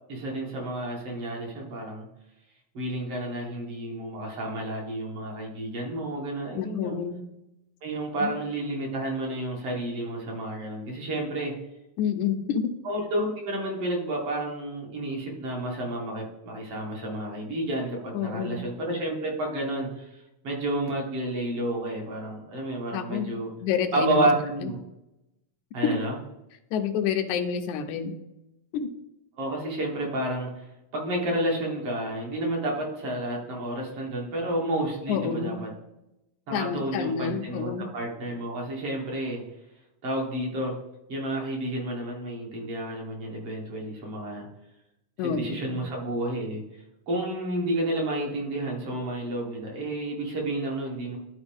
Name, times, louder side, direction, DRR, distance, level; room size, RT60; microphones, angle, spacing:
voice 1, 0.1-2.1 2.7-7.0 7.8-11.5 12.8-23.5 23.9-24.7 25.7-26.1 29.4-30.7 30.9-35.7 36.5-39.4 40.0-40.7 41.1-44.5 45.2-46.6 47.1-51.2, right 1 dB, 55° right, -1 dB, 2.6 m, -30 dB
voice 2, 6.5-7.2 8.2-8.3 12.0-12.7 18.1-18.6 22.9-23.3 23.6-24.3 24.6-24.7 25.8-26.0 26.7-28.2 28.7-28.9 35.1-35.6 36.5-37.9 45.2-45.8, left 7 dB, 85° left, 6 dB, 2.1 m, -28 dB
12.0 x 4.5 x 3.5 m, 0.91 s
omnidirectional pair, 3.4 m